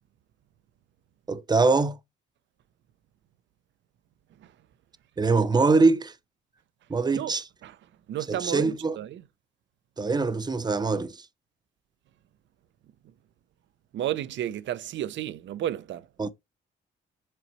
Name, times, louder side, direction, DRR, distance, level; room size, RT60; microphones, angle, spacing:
voice 1, 1.3-2.0 5.2-6.1 6.9-7.5 8.3-9.0 10.0-11.2 16.2-16.3, right 3 dB, 20° right, 0.7 m, -23 dB
voice 2, 8.1-9.2 13.9-16.0, right 12 dB, 70° right, 0.7 m, -32 dB
7.6 x 4.0 x 3.1 m
cardioid pair, 90°, 20 cm